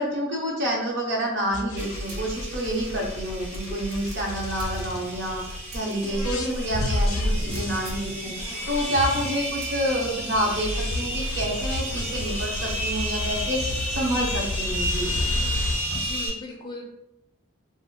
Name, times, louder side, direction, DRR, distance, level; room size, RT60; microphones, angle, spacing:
voice 1, 0.0-13.6 13.9-15.1, equal, 55° right, -2 dB, 0.8 m, -28 dB
sound 1, 1.5-5.6 6.0-15.8, left 2 dB, 85° left, 0.4 m, -31 dB
sound 2, 1.8-16.3, right 1 dB, 35° right, 1.0 m, -33 dB
sound 3, 2.1-2.4 2.8-2.9 3.5-5.2 5.7-5.9 6.4-6.5 7.5-8.2 9.6-9.9, right 1 dB, 85° right, 0.5 m, -40 dB
voice 2, 15.7-16.8, left 2 dB, 20° left, 0 dB, 0.3 m, -38 dB
2.2 x 2.1 x 3.5 m, 0.85 s
head